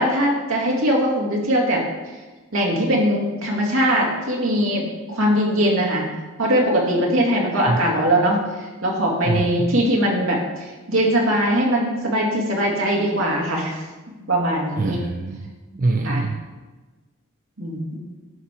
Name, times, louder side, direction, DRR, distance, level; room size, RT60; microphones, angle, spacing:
voice 1, 0.0-1.8 2.5-6.1 6.4-13.8 14.3-15.0 16.0-16.3 17.6-18.0, equal, 65° right, -2 dB, 2.1 m, -21 dB
voice 2, 9.2-9.8 14.8-16.4, right 3 dB, 40° right, 4 dB, 0.4 m, -24 dB
11.0 x 5.2 x 4.4 m, 1.2 s
head